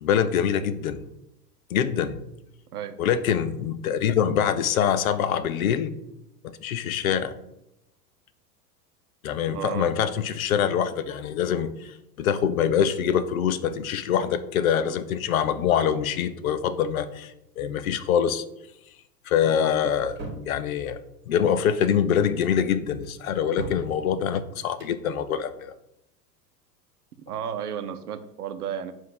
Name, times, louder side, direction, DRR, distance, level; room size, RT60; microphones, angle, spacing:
voice 1, 0.0-1.0 1.7-2.2 3.0-5.9 6.6-7.3 9.2-18.4 19.3-20.2 20.4-21.0 21.3-25.7, left 8 dB, 60° left, 13 dB, 0.6 m, -24 dB
voice 2, 9.5-9.9 27.3-28.9, right 8 dB, 65° right, 9 dB, 0.8 m, -33 dB
sound 1, 19.9-20.5 21.6-22.0 23.0-23.9 24.6-25.0, right 3 dB, 20° right, 1.5 m, -39 dB
7.4 x 2.7 x 5.3 m, 0.84 s
figure-of-eight pair, 85°, 49 cm